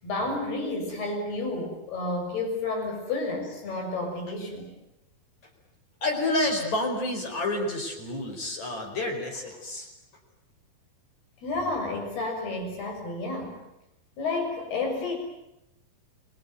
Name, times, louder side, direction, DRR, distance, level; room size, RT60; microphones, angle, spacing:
voice 1, 0.0-4.7 11.4-13.5 14.2-15.2, left 2 dB, 75° left, 3 dB, 8.7 m, -31 dB
voice 2, 6.0-9.9, left 2 dB, 45° left, 2 dB, 5.9 m, -29 dB
30.0 x 21.0 x 9.3 m, 0.89 s
omnidirectional pair, 4.6 m